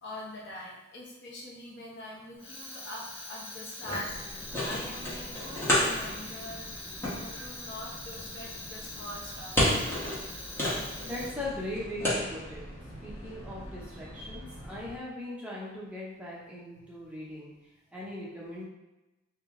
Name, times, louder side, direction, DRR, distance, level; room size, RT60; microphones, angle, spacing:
voice 1, 0.0-9.5 10.6-10.8, left 1 dB, 60° left, -3 dB, 0.9 m, -44 dB
Fire, 2.3-11.7, left 2 dB, 30° left, 0.9 m, -42 dB
sound 1, 4.0-14.9, left 1 dB, 10° left, 1.1 m, -34 dB
voice 2, 11.0-12.6 13.0-17.5 17.9-18.6, left 1 dB, 5° right, -6 dB, 0.8 m, -39 dB
3.4 x 2.8 x 3.6 m, 1.0 s
head